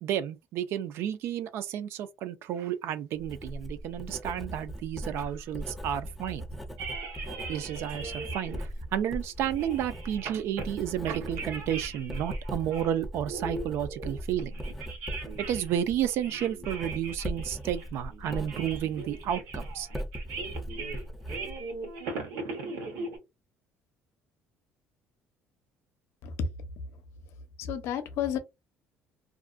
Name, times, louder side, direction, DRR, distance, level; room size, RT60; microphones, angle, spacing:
voice 1, 0.0-6.5 7.5-14.5 15.5-19.9, right 10 dB, 65° right, 0.3 m, -32 dB
Writing, 3.1-22.0, equal, ahead, 0.4 m, -39 dB
sound 1, 6.8-8.6 9.0-9.1 9.5-10.7 10.9-12.9 13.3-15.7 16.1-23.2, right 3 dB, 80° right, 0.9 m, -39 dB
voice 2, 27.6-28.4, left 7 dB, 65° left, 0.5 m, -31 dB
2.4 x 2.1 x 2.4 m
cardioid pair, 135°, 5 cm